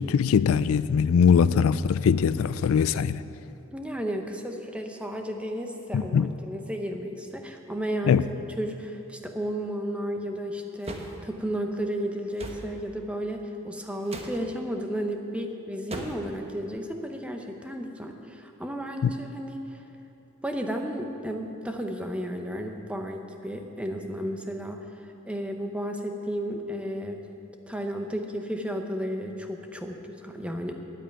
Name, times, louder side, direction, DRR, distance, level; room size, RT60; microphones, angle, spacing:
voice 1, 0.0-3.2 5.9-6.3 8.1-8.2 19.0-19.1, left 6 dB, 90° left, 0.3 m, -21 dB
voice 2, 3.7-8.2 8.6-19.8 20.4-27.2 27.7-30.8, equal, 5° right, 0.8 m, -33 dB
sound 1, 10.8-11.2 12.4-12.7 14.1-14.4 15.9-16.3, right 1 dB, 30° right, 1.0 m, -36 dB
9.6 x 8.5 x 8.9 m
head